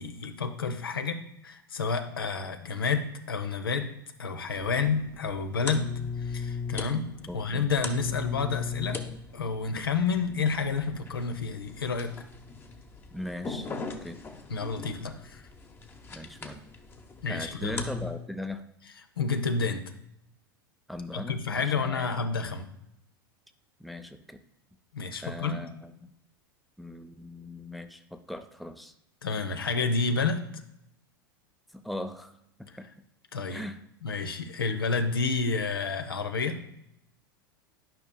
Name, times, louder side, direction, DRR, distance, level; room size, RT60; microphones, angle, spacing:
voice 1, 0.0-3.9 4.2-5.8 6.2-7.1 7.3-9.0 9.3-12.1 14.5-15.4 17.2-17.8 19.2-19.8 21.1-22.7 24.9-25.6 29.2-30.4 32.7-32.8 33.3-33.6 34.0-36.6, left 4 dB, 85° left, 7 dB, 0.7 m, -29 dB
sound 1, 4.5-18.1, left 4 dB, 20° left, 0.9 m, -39 dB
voice 2, 7.3-7.7 13.1-14.2 16.1-16.6 17.3-18.6 20.9-22.1 23.8-24.4 25.2-26.1 26.8-28.9 31.7-32.3 32.6-32.9 33.5-33.8, left 1 dB, ahead, 8 dB, 0.6 m, -39 dB
11.5 x 5.3 x 2.2 m, 0.79 s
hypercardioid pair, 90°, 12 cm